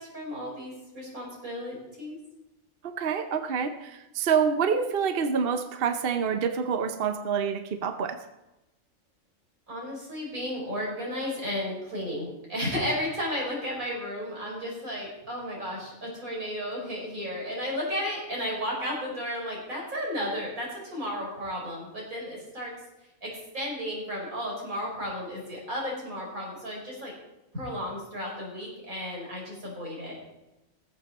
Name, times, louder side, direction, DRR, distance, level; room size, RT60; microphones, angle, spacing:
voice 1, 0.0-2.2 9.7-22.7 23.2-27.1 27.5-30.2, equal, 90° right, -3 dB, 5.3 m, -33 dB
voice 2, 2.8-8.2, right 6 dB, 50° right, 8 dB, 0.9 m, -27 dB
19.5 x 7.6 x 4.2 m, 0.99 s
omnidirectional pair, 1.4 m